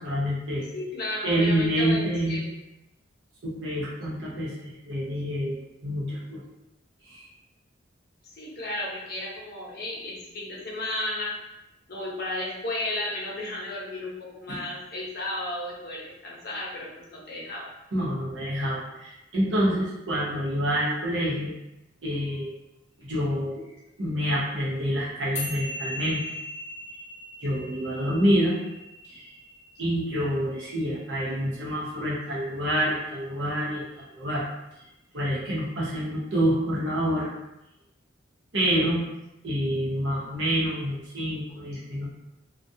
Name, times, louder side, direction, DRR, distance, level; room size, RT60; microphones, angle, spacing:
voice 1, 0.0-0.7 1.2-2.4 3.4-5.6 5.8-6.4 7.0-7.3 14.5-14.6 17.9-21.5 22.0-22.5 23.0-23.6 24.0-26.2 27.4-28.5 29.0-29.2 29.8-34.5 35.1-37.4 38.5-39.0 39.4-42.1, equal, 70° right, -7 dB, 0.8 m, -27 dB
voice 2, 0.7-2.5 8.2-11.3 11.9-17.7, left 1 dB, 55° left, -4 dB, 0.7 m, -33 dB
sound 1, 25.4-31.9, left 1 dB, 15° left, 0.6 m, -39 dB
2.3 x 2.2 x 2.7 m, 0.91 s
head